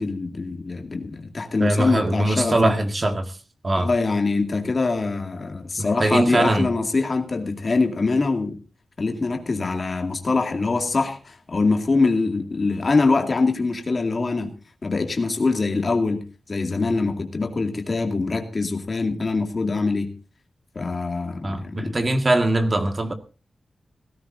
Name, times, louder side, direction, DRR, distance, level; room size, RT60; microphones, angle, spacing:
voice 1, 0.0-2.8 3.8-8.6 9.0-14.5 14.8-20.1 20.7-22.0, left 3 dB, 35° left, 2.3 m, -24 dB
voice 2, 1.6-3.4 3.6-3.9 5.8-6.7 21.4-23.1, right 1 dB, 30° right, 1.8 m, -22 dB
17.0 x 16.5 x 2.7 m
wide cardioid pair, 175°, 0 cm